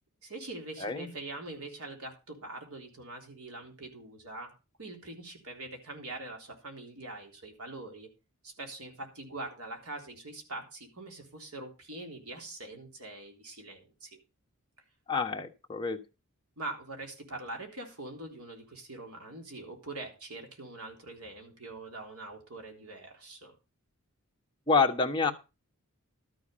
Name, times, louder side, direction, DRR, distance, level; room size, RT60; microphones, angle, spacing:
voice 1, 0.2-4.5 4.8-8.1 8.4-14.2 16.6-23.5, right 2 dB, 85° right, 3 dB, 3.6 m, -43 dB
voice 2, 15.1-16.0 24.7-25.3, left 4 dB, 20° left, 2 dB, 1.3 m, -27 dB
13.0 x 7.0 x 5.5 m, 0.29 s
head